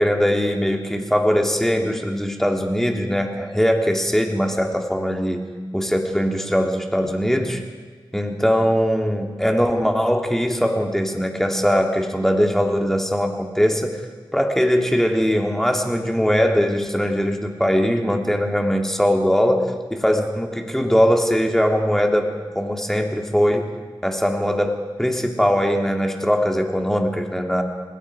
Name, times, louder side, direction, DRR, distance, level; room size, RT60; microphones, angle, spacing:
voice 1, 0.0-5.5 5.7-7.6 8.1-13.9 14.3-23.7 24.0-27.6, equal, 5° left, 2 dB, 3.1 m, -21 dB
28.0 x 19.5 x 5.0 m, 1.5 s
cardioid pair, 50°, 9 cm